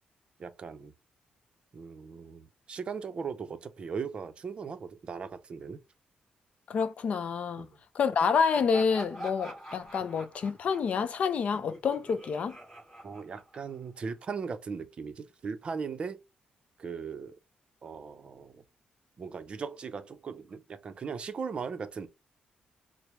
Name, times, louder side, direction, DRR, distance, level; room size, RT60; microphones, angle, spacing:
voice 1, 0.4-0.9 1.7-5.8 7.6-7.7 13.0-16.2 16.8-17.4 17.8-18.6 19.2-22.1, right 5 dB, 40° right, 0.5 m, -38 dB
voice 2, 6.7-7.7 7.9-12.6, left 6 dB, 55° left, 0.5 m, -28 dB
Laughter, 8.5-14.0, right 1 dB, 10° left, 1.9 m, -46 dB
4.7 x 2.0 x 2.9 m
wide cardioid pair, 155°, 3 cm